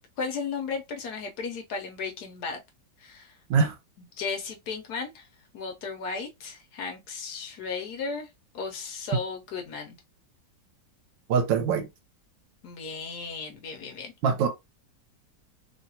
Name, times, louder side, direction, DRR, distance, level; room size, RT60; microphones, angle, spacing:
voice 1, 0.2-2.6 3.0-3.4 4.0-5.3 5.5-8.3 8.5-10.0 12.6-14.1, left 4 dB, 70° left, 1.1 m, -35 dB
voice 2, 11.3-11.8 14.2-14.5, right 6 dB, 80° right, 1.4 m, -23 dB
3.2 x 2.3 x 2.6 m
omnidirectional pair, 2.0 m